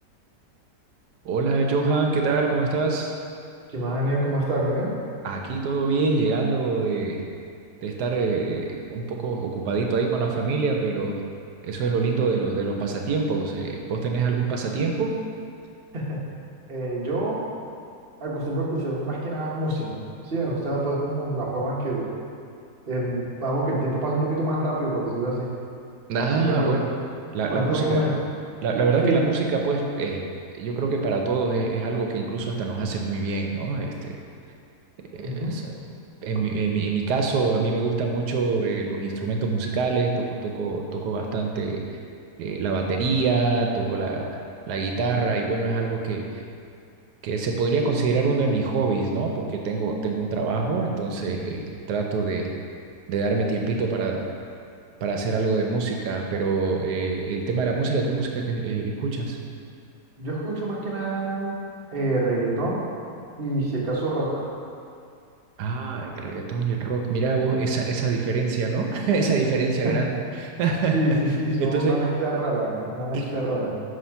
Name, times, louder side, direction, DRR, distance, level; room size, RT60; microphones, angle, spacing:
voice 1, 1.2-3.1 5.2-7.2 7.8-11.2 11.6-15.2 26.1-26.9 27.3-28.1 28.6-30.3 30.5-34.2 35.1-35.7 36.2-41.8 42.4-44.4 44.7-46.4 47.2-52.5 53.1-54.3 55.0-59.4 65.6-71.2 71.6-72.1 73.1-73.3, right 4 dB, 85° right, 2 dB, 1.3 m, -25 dB
voice 2, 3.7-4.9 15.9-16.2 16.7-17.4 18.2-22.1 22.9-25.5 26.3-26.7 27.5-28.1 29.0-29.2 35.2-35.5 60.2-61.5 61.9-62.8 63.4-64.4 69.8-70.0 70.9-73.8, right 1 dB, 40° right, -4 dB, 1.3 m, -26 dB
9.5 x 3.2 x 5.7 m, 2.4 s
omnidirectional pair, 1.7 m